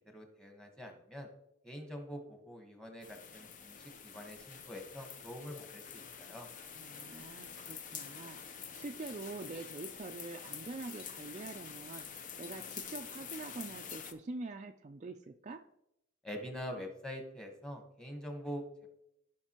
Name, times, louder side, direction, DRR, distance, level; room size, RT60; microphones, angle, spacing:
voice 1, 0.1-1.3 1.6-3.8 4.0-6.5 16.2-18.9, equal, 5° left, 3 dB, 1.2 m, -45 dB
sound 1, 3.0-14.1, left 7 dB, 40° left, 0.6 m, -47 dB
voice 2, 6.7-15.6, right 3 dB, 35° right, 5 dB, 0.4 m, -45 dB
15.0 x 5.7 x 3.0 m, 0.79 s
head